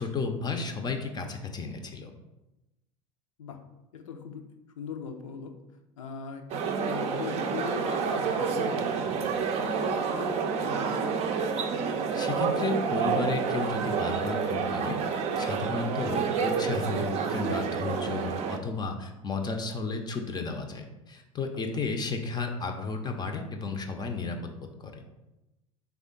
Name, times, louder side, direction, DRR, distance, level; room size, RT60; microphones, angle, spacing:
voice 1, 0.0-2.1 12.1-15.0 15.4-24.5 24.8-24.9, left 4 dB, 25° left, 5 dB, 0.5 m, -33 dB
voice 2, 3.9-4.4 4.8-5.6 6.0-9.0 9.5-11.3 21.7-21.8, left 6 dB, 75° left, 5 dB, 0.6 m, -39 dB
sound 1, 6.5-18.6, right 6 dB, 40° right, 0.5 m, -29 dB
3.6 x 3.5 x 3.8 m, 0.97 s
figure-of-eight pair, 75°, 17 cm